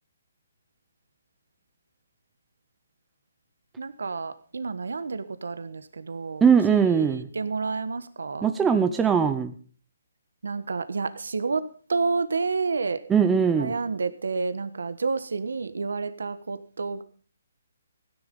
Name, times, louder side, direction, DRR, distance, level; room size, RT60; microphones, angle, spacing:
voice 1, 3.8-6.4 6.7-7.1 7.3-8.5 10.4-13.0 13.6-17.0, right 4 dB, 90° right, 12 dB, 1.3 m, -29 dB
voice 2, 6.4-7.3 8.4-9.5 13.1-13.7, right 6 dB, 10° right, 6 dB, 0.8 m, -20 dB
16.5 x 10.5 x 5.4 m, 0.41 s
hypercardioid pair, 165°, 0 cm